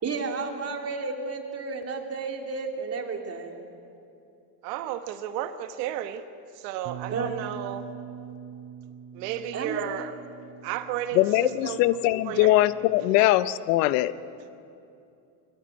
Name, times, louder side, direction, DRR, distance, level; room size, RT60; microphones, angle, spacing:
voice 1, 0.0-3.6 7.1-7.3 9.5-9.8, right 4 dB, 30° right, 3 dB, 2.7 m, -32 dB
voice 2, 4.6-6.2 6.6-7.8 9.1-10.1 10.6-11.9 12.2-12.6 13.1-13.3, right 11 dB, 85° right, 9 dB, 1.4 m, -33 dB
Bass guitar, 6.8-13.1, right 7 dB, 45° right, 3.9 m, -44 dB
voice 3, 11.1-14.1, left 16 dB, 85° left, 15 dB, 0.8 m, -21 dB
22.5 x 14.5 x 10.0 m, 2.6 s
supercardioid pair, 120°, 47 cm